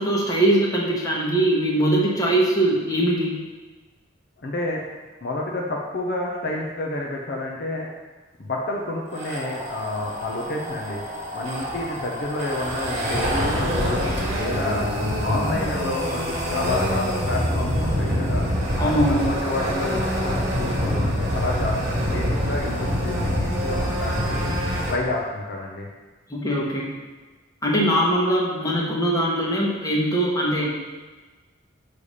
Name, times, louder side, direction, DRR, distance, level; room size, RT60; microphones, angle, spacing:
voice 1, 0.0-3.3 15.3-15.5 18.8-19.3 26.3-26.9 27.6-30.7, right 1 dB, 15° left, -3 dB, 1.1 m, -21 dB
voice 2, 4.4-4.8 5.2-7.9 8.4-11.0 11.3-14.9 15.2-18.4 18.8-18.9 19.2-24.4 24.9-25.9, left 2 dB, 50° left, -1 dB, 0.7 m, -29 dB
sound 1, 9.1-24.9, equal, 30° right, 1.7 m, -25 dB
6.8 x 3.3 x 5.5 m, 1.3 s
head